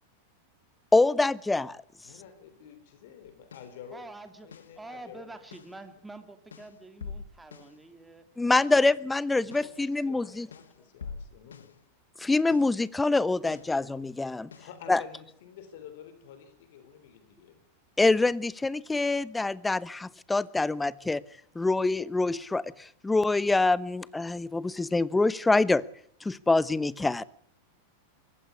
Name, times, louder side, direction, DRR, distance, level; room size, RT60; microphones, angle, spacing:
voice 1, 0.9-1.8 8.4-10.5 12.2-14.5 14.9-15.0 18.0-21.2 21.5-25.8 26.2-27.2, left 3 dB, 10° left, 20 dB, 0.9 m, -25 dB
voice 2, 2.0-4.1 4.4-5.4 9.4-11.7 14.3-17.6, left 8 dB, 65° left, 11 dB, 3.9 m, -49 dB
sound 1, 3.3-3.8 4.5-4.8 5.5-5.8 6.5-7.8 8.5-8.8 9.5-9.8 10.5-11.8 12.5-12.8 13.5-13.8 14.5-14.8, left 5 dB, 85° left, 1.5 m, -45 dB
voice 3, 3.9-8.2, right 2 dB, 10° right, 8 dB, 2.7 m, -47 dB
23.0 x 15.0 x 9.7 m, 0.63 s
hypercardioid pair, 100°, 0 cm